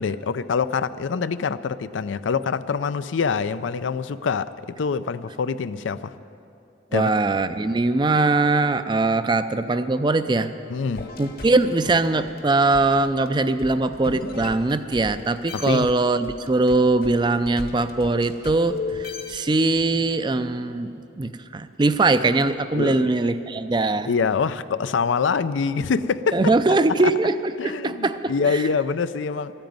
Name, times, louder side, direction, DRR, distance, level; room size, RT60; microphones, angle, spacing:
voice 1, 0.0-6.2 6.9-7.1 10.7-11.1 15.5-15.9 22.7-23.1 24.0-26.4 27.0-27.1 27.6-29.5, left 5 dB, 80° left, 14 dB, 0.4 m, -25 dB
voice 2, 6.9-10.5 11.2-20.9 21.2-24.1 26.3-28.6, right 2 dB, 25° right, 11 dB, 0.4 m, -21 dB
sound 1, 10.9-15.1 15.5-19.8, left 3 dB, 50° left, 1.0 m, -36 dB
13.5 x 8.9 x 9.4 m, 2.7 s
head